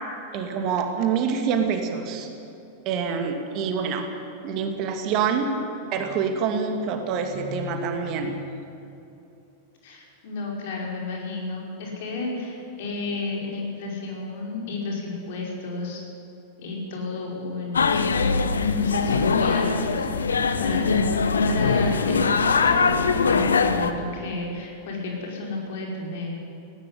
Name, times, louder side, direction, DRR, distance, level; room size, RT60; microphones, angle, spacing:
voice 1, 0.3-2.3 2.9-4.1 4.4-5.6 5.9-8.3, right 6 dB, 40° right, 5 dB, 2.4 m, -26 dB
voice 2, 9.8-16.0 16.6-26.4, left 3 dB, 55° left, -1 dB, 5.5 m, -32 dB
sound 1, 17.7-23.9, left 5 dB, 70° left, 1.1 m, -22 dB
18.0 x 17.0 x 9.7 m, 2.7 s
figure-of-eight pair, 90°, 0 cm